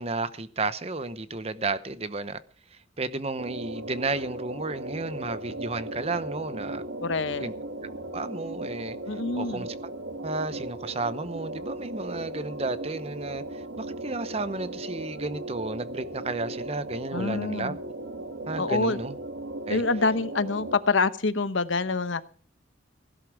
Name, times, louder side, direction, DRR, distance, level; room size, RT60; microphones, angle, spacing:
voice 1, 0.0-2.4 3.0-6.8 7.4-7.5 8.1-9.0 9.3-9.7 10.2-17.7 18.5-19.1 19.7-19.8, right 3 dB, 35° right, 0.9 m, -32 dB
sound 1, 3.4-20.8, right 1 dB, 85° right, 1.7 m, -37 dB
voice 2, 7.0-7.5 9.1-9.7 17.1-17.8 18.6-19.0 19.7-22.2, left 3 dB, 85° left, 1.0 m, -26 dB
16.5 x 11.5 x 4.8 m
head